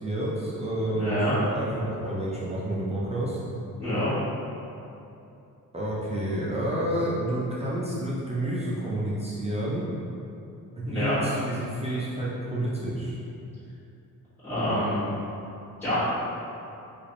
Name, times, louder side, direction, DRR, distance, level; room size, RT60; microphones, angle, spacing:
voice 1, 0.0-3.4 5.7-9.8 10.8-13.2, right 1 dB, 20° right, -7 dB, 0.4 m, -29 dB
voice 2, 1.0-1.3 3.8-4.1 10.8-11.1 14.4-15.1 15.8-15.9, left 1 dB, 5° left, -18 dB, 1.4 m, -27 dB
3.3 x 2.4 x 3.8 m, 2.7 s
cardioid pair, 145°, 34 cm